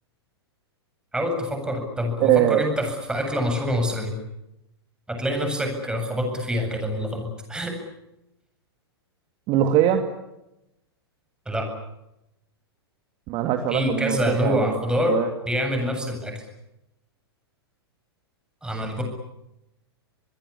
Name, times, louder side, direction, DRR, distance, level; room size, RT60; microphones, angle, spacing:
voice 1, 1.1-4.2 5.1-7.8 11.5-11.7 13.7-15.2 15.5-16.3 18.6-19.0, equal, 5° right, 4 dB, 7.8 m, -26 dB
voice 2, 2.2-2.7 9.5-10.0 13.3-14.8 15.1-15.3, right 11 dB, 40° right, 6 dB, 2.5 m, -21 dB
25.0 x 21.5 x 10.0 m, 0.89 s
figure-of-eight pair, 105°, 13 cm